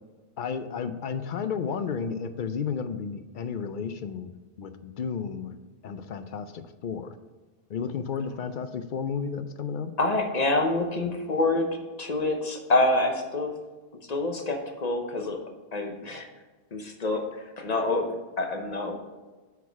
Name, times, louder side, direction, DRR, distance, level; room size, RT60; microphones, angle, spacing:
voice 1, 0.4-5.5 5.8-7.2 7.7-9.9, left 6 dB, 60° left, 10 dB, 0.6 m, -32 dB
voice 2, 10.0-11.7 12.0-13.5 14.1-15.4 15.7-16.3 16.7-18.1 18.4-18.9, left 2 dB, 40° left, 4 dB, 0.9 m, -26 dB
8.2 x 4.7 x 4.5 m, 1.3 s
omnidirectional pair, 1.2 m